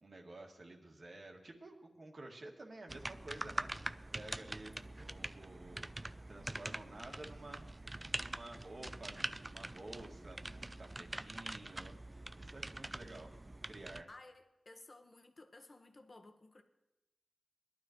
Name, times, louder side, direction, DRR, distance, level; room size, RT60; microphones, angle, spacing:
voice 1, 0.0-5.9 6.3-7.6 8.1-13.3 13.7-14.1, right 2 dB, 50° right, 1 dB, 2.0 m, -52 dB
sound 1, 2.9-14.0, right 2 dB, 25° right, 0.3 m, -44 dB
voice 2, 14.1-16.6, left 2 dB, 40° left, 4 dB, 1.3 m, -57 dB
20.5 x 12.0 x 3.1 m, 0.93 s
wide cardioid pair, 80°, 0 cm